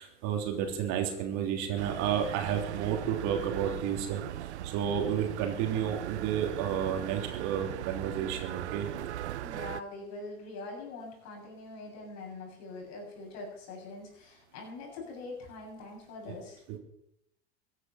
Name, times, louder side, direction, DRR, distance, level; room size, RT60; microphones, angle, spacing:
voice 1, 0.0-8.9 16.7-16.8, right 8 dB, 55° right, 3 dB, 3.3 m, -31 dB
sound 1, 1.8-9.8, right 12 dB, 85° right, 0.7 m, -38 dB
voice 2, 9.4-16.6, left 3 dB, 50° left, -1 dB, 7.4 m, -43 dB
15.0 x 10.0 x 7.1 m, 0.77 s
hypercardioid pair, 90°, 33 cm